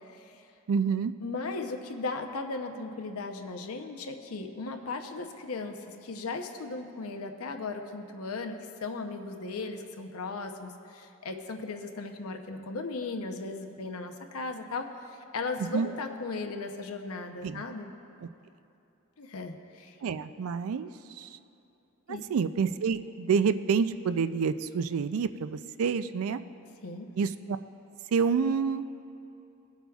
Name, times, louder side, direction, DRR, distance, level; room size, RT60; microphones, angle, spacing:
voice 1, 0.7-1.1 15.7-15.9 17.4-17.6 18.2-18.3 20.0-20.9 21.2-21.3 22.1-26.4 27.2-27.6 28.1-28.9, right 6 dB, 80° right, 12 dB, 0.4 m, -28 dB
voice 2, 1.2-17.9 19.2-20.0 22.1-22.3 26.8-27.1, left 3 dB, 85° left, 5 dB, 0.7 m, -37 dB
19.0 x 8.0 x 2.4 m, 2.8 s
head